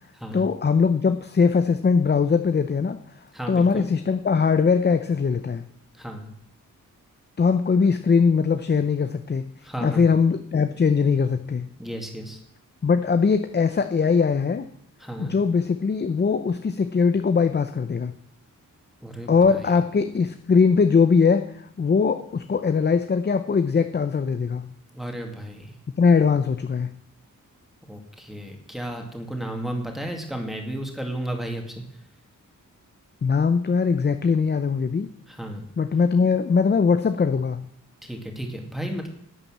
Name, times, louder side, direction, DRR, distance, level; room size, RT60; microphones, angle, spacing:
voice 1, 0.3-3.0 3.5-5.6 7.4-9.5 9.8-11.7 12.8-14.7 15.2-18.1 19.3-24.7 26.0-27.0 33.2-35.1 35.8-37.7, left 5 dB, 30° left, 9 dB, 0.6 m, -21 dB
voice 2, 3.3-3.9 6.0-6.3 9.6-10.1 11.8-12.4 15.0-15.4 19.0-19.7 24.9-25.7 27.9-31.8 35.3-35.6 38.0-39.1, right 1 dB, ahead, 2 dB, 2.3 m, -33 dB
11.0 x 8.8 x 7.4 m, 0.68 s
wide cardioid pair, 115°, 33 cm